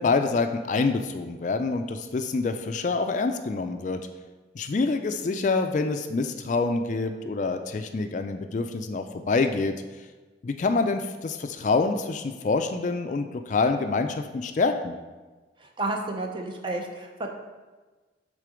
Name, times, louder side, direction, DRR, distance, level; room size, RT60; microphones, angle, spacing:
voice 1, 0.0-4.1 4.5-10.1 10.4-14.9, left 3 dB, 40° left, 7 dB, 0.3 m, -26 dB
voice 2, 15.6-17.3, right 2 dB, 25° right, 2 dB, 0.6 m, -31 dB
6.6 x 3.8 x 5.0 m, 1.3 s
head